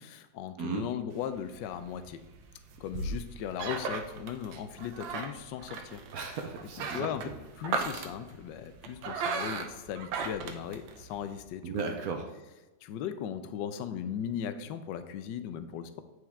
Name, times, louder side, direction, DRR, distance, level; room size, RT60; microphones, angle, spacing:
voice 1, 0.0-2.2 2.8-6.0 6.8-11.8 12.8-16.0, left 9 dB, 75° left, 11 dB, 1.2 m, -37 dB
sound 1, 1.1-11.4, right 4 dB, 80° right, 1.5 m, -38 dB
voice 2, 6.1-7.3 11.6-12.3, right 5 dB, 65° right, 4 dB, 1.0 m, -35 dB
9.1 x 4.9 x 3.5 m, 1.1 s
omnidirectional pair, 2.1 m